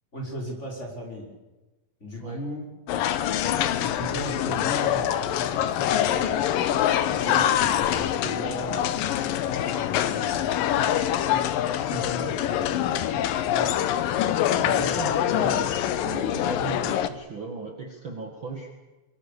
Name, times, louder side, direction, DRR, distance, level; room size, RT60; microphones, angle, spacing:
voice 1, 0.1-1.3 2.0-2.7 3.7-6.4 7.0-8.9 9.4-10.9 11.2-11.5 11.9-13.7 14.5-14.9, right 1 dB, 20° left, -1 dB, 6.1 m, -37 dB
sound 1, 2.9-17.1, left 11 dB, 85° left, 2.8 m, -25 dB
voice 2, 14.6-15.7 16.0-18.7, right 4 dB, 40° right, 3 dB, 2.5 m, -36 dB
24.0 x 23.5 x 6.9 m, 1.1 s
omnidirectional pair, 3.9 m